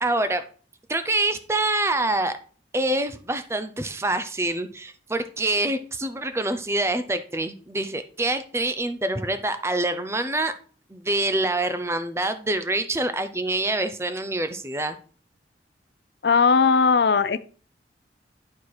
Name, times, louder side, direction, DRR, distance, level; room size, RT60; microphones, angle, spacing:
voice 1, 0.0-0.4 0.9-2.4 2.7-10.5 10.9-15.0, right 2 dB, 15° right, 10 dB, 0.6 m, -26 dB
voice 2, 16.2-17.4, left 5 dB, 65° left, 14 dB, 0.5 m, -18 dB
11.0 x 4.4 x 4.7 m, 0.42 s
head